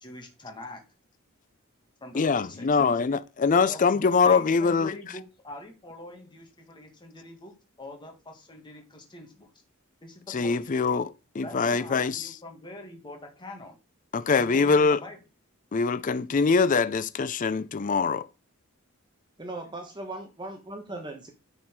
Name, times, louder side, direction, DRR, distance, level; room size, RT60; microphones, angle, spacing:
voice 1, 0.0-0.8 2.0-3.0 3.7-3.8 4.2-9.5 10.0-10.7 11.4-13.8 14.3-15.2, left 1 dB, 20° left, 1.8 m, -44 dB
voice 2, 2.1-5.0 10.3-12.3 14.1-15.0 15.7-18.3, left 4 dB, 35° left, 0.4 m, -23 dB
voice 3, 19.4-21.3, right 2 dB, 20° right, 1.0 m, -38 dB
9.3 x 4.6 x 4.7 m
head